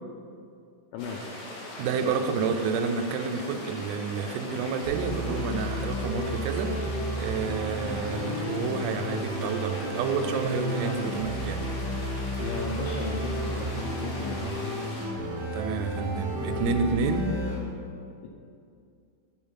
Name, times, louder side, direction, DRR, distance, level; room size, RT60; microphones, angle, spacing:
sound 1, 1.0-15.1, left 1 dB, 65° left, 3.4 m, -41 dB
voice 1, 1.8-6.8 7.2-11.7 15.5-17.3, right 5 dB, 85° right, 6 dB, 3.2 m, -29 dB
sound 2, 4.8-17.5, right 1 dB, 55° right, 2.2 m, -32 dB
voice 2, 12.4-14.5, left 5 dB, 90° left, 0 dB, 2.6 m, -36 dB
7.0 x 5.1 x 5.7 m, 2.4 s
omnidirectional pair, 6.0 m